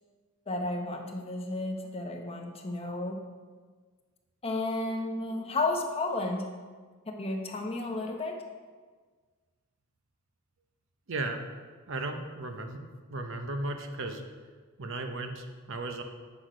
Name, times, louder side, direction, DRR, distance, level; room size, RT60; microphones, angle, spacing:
voice 1, 0.5-3.2 4.4-6.5 7.2-8.4, left 2 dB, 25° left, 2 dB, 0.8 m, -32 dB
voice 2, 11.1-11.4 11.9-12.8 13.1-14.2 14.8-16.0, right 2 dB, 60° right, 5 dB, 0.8 m, -35 dB
8.1 x 6.2 x 5.0 m, 1.5 s
head